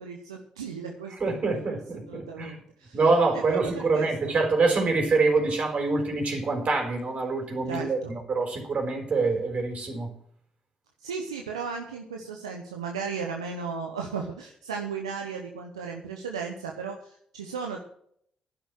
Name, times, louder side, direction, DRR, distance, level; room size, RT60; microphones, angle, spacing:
voice 1, 0.0-1.8 2.1-3.0 3.5-4.3 7.7-8.1 11.0-17.8, right 5 dB, 90° right, 2 dB, 0.9 m, -35 dB
voice 2, 1.2-2.6 2.9-10.1, right 3 dB, 50° right, 3 dB, 4.6 m, -25 dB
11.5 x 11.0 x 6.1 m, 0.65 s
hypercardioid pair, 40°, 3 cm